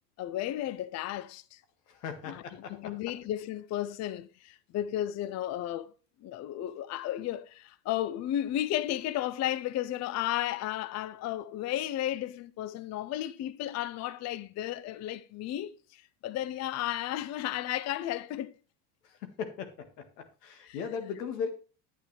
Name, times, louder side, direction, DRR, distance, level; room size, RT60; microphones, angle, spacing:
voice 1, 0.2-1.6 2.3-2.4 2.7-5.9 6.2-18.6 20.6-20.8, left 13 dB, 35° left, 0.5 m, -34 dB
voice 2, 1.9-2.7 19.0-19.7 20.4-21.5, left 6 dB, 90° left, 1.8 m, -37 dB
9.0 x 9.0 x 3.2 m
supercardioid pair, 95°, 46 cm